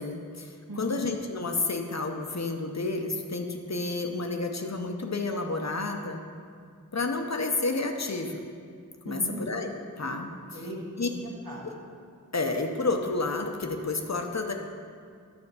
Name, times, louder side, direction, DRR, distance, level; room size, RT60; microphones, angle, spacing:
voice 1, 0.0-6.2 6.9-8.5 9.0-10.3 11.0-11.1 12.3-14.5, left 3 dB, 55° left, 4 dB, 0.8 m, -30 dB
voice 2, 0.7-1.0 9.0-9.4 10.3-11.7, right 1 dB, 80° right, -3 dB, 1.6 m, -39 dB
9.6 x 4.4 x 6.7 m, 2.2 s
wide cardioid pair, 60°, 33 cm